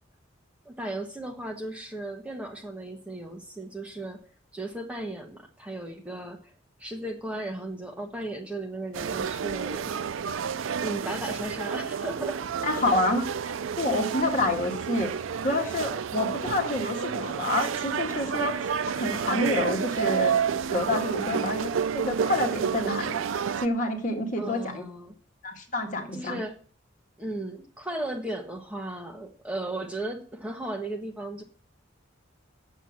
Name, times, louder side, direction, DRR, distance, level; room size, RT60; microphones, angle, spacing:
voice 1, 0.6-4.2 4.5-6.4 6.8-10.3 10.8-12.4 12.8-13.0 21.1-21.5 24.4-25.1 26.1-26.5 27.2-31.4, right 1 dB, 5° right, 2 dB, 1.3 m, -36 dB
sound 1, 8.9-23.7, right 7 dB, 80° right, 0.4 m, -30 dB
voice 2, 12.6-13.2 13.8-15.1 15.4-18.6 19.0-20.4 20.7-23.2 23.6-24.8 25.4-26.4, left 2 dB, 40° left, 2 dB, 2.0 m, -28 dB
8.2 x 7.6 x 7.4 m, 0.44 s
head